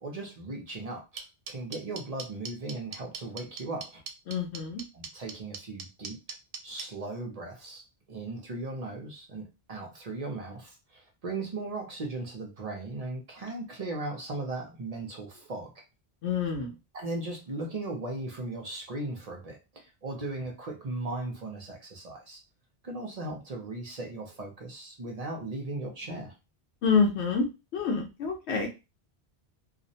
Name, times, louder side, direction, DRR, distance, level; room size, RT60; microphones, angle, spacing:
voice 1, 0.0-4.0 4.9-6.2 6.6-7.8 8.1-15.8 16.9-22.4 22.8-26.3, right 2 dB, 45° right, 2 dB, 0.6 m, -37 dB
sound 1, 1.2-6.8, right 6 dB, 75° right, 0.8 m, -38 dB
voice 2, 4.3-4.8 16.2-16.8 26.8-27.5 27.7-28.7, left 5 dB, 90° left, 1 dB, 0.9 m, -27 dB
2.4 x 2.0 x 2.7 m, 0.26 s
omnidirectional pair, 1.1 m